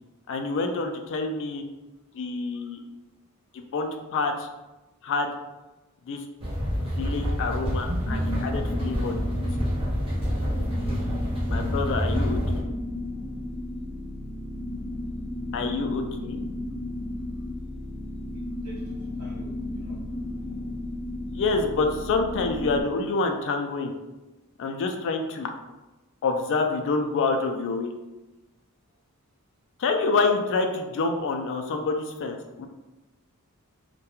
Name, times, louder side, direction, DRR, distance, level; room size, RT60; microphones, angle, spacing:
voice 1, 0.3-1.6 2.1-2.8 3.5-4.5 5.0-5.3 6.1-6.2 6.8-9.4 11.5-12.7 15.5-16.4 21.3-23.9 24.6-25.5 26.2-27.9 29.8-32.7, left 3 dB, 55° left, 5 dB, 0.3 m, -27 dB
sound 1, 6.4-12.6, equal, 25° right, 0.5 m, -28 dB
sound 2, 7.8-22.8, left 1 dB, 15° left, 0.7 m, -34 dB
voice 2, 11.9-12.4 12.6-12.7 18.3-20.0, right 1 dB, 85° right, -5 dB, 0.9 m, -48 dB
2.3 x 2.2 x 2.9 m, 1.1 s
head